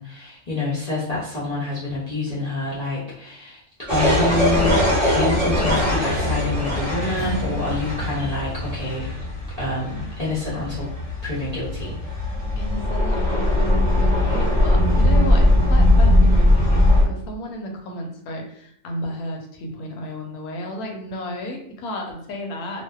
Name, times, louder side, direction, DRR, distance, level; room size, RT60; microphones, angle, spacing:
voice 1, 0.0-4.8 5.1-9.1 9.6-10.9 11.2-12.0, left 2 dB, 60° left, -9 dB, 0.4 m, -27 dB
sound 1, 3.9-17.0, left 1 dB, 15° right, 1.1 m, -20 dB
Acoustic guitar, 7.1-11.4, equal, 40° right, 0.7 m, -40 dB
voice 2, 12.6-22.8, left 1 dB, 80° left, 2 dB, 1.1 m, -33 dB
2.6 x 2.1 x 2.2 m, 0.69 s
omnidirectional pair, 1.6 m